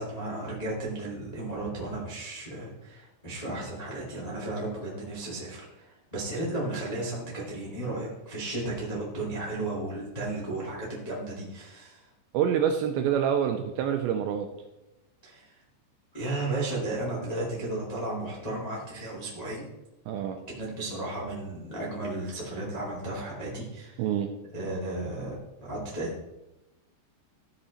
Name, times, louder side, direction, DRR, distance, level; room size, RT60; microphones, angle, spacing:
voice 1, 0.0-12.1 15.2-15.5 16.1-19.7 20.5-24.1 24.5-25.3 25.6-26.1, right 2 dB, 75° left, -5 dB, 0.3 m, -34 dB
voice 2, 12.3-14.5 20.1-20.4 24.0-24.3, right 8 dB, 85° right, 5 dB, 2.6 m, -26 dB
14.0 x 5.6 x 4.2 m, 0.96 s
omnidirectional pair, 5.6 m